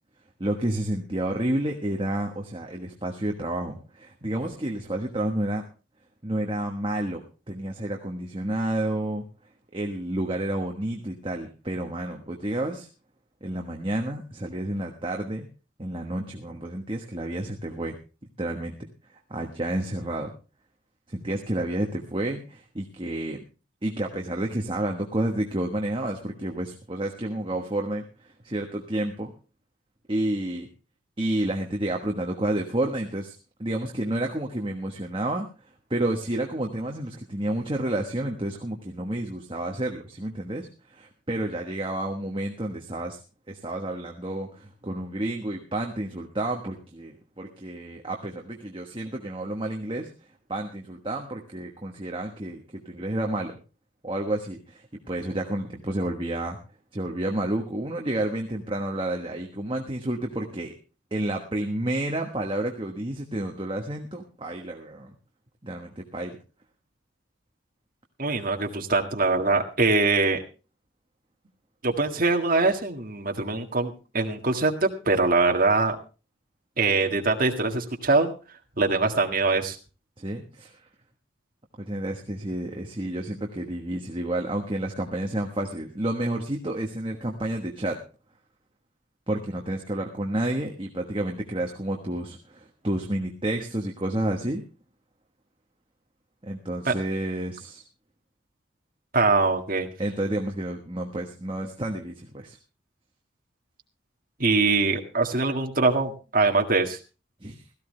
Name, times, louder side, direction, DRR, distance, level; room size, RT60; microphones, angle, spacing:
voice 1, 0.4-5.6 6.2-9.2 9.7-12.9 13.4-15.5 15.8-17.9 18.4-18.7 19.3-20.3 21.1-23.4 23.8-29.3 30.1-30.7 31.2-33.3 33.6-35.5 35.9-43.2 43.5-50.1 50.5-53.5 54.0-56.6 56.9-60.7 61.1-65.1 65.6-66.4 80.2-80.8 81.8-88.0 89.3-94.6 96.5-97.8 100.0-102.6 107.4-107.6, right 1 dB, 25° right, 2 dB, 1.3 m, -30 dB
voice 2, 68.2-70.4 71.8-76.0 76.8-78.3 78.8-79.8 96.9-97.0 99.1-99.9 104.4-107.0, right 3 dB, 45° right, 3 dB, 1.8 m, -23 dB
17.0 x 14.0 x 3.3 m, 0.33 s
head